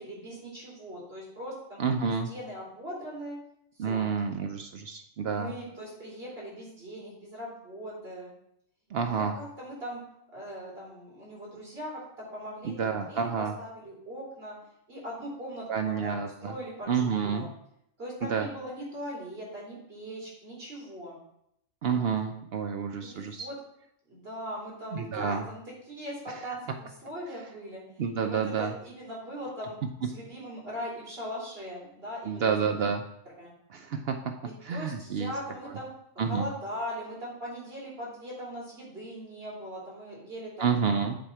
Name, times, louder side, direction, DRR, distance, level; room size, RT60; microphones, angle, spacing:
voice 1, 0.0-1.8 2.2-3.4 3.7-4.1 5.3-8.3 9.0-10.0 10.3-14.6 14.9-17.5 18.0-21.2 23.0-23.6 24.0-29.8 30.0-32.5 33.4-33.5 34.7-35.9 36.1-40.7, equal, 45° right, -6 dB, 3.5 m, -40 dB
voice 2, 1.8-2.3 3.8-5.5 8.9-9.4 12.6-13.5 15.7-16.5 16.9-17.5 18.3-18.5 21.8-23.5 24.9-25.4 28.0-28.7 32.3-33.0 33.7-34.2 34.6-35.3 36.2-36.5 40.6-41.2, right 6 dB, 60° right, 5 dB, 0.6 m, -29 dB
7.6 x 4.5 x 4.6 m, 0.74 s
omnidirectional pair, 1.5 m